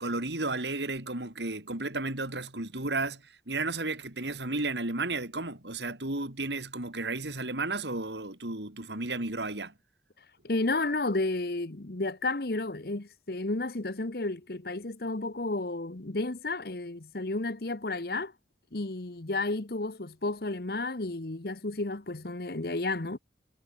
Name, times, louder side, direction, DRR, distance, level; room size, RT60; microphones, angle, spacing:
voice 1, 0.0-9.7, right 2 dB, 80° right, 4.2 m, -33 dB
voice 2, 10.4-18.3 18.7-23.2, left 2 dB, 60° left, 1.2 m, -32 dB
head